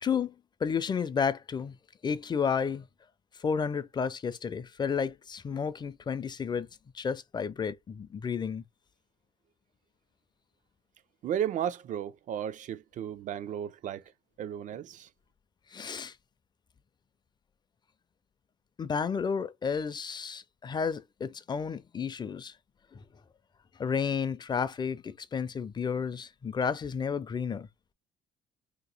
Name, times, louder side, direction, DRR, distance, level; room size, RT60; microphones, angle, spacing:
voice 1, 0.0-0.3 0.6-1.8 2.0-2.8 3.4-6.7 6.9-8.6 15.7-16.1 18.8-22.5 22.9-23.0 23.8-27.7, left 6 dB, 25° left, 0.4 m, -31 dB
voice 2, 11.2-14.0 14.4-15.1, right 9 dB, 50° right, 0.4 m, -34 dB
2.9 x 2.8 x 3.9 m
cardioid pair, 110°, 17 cm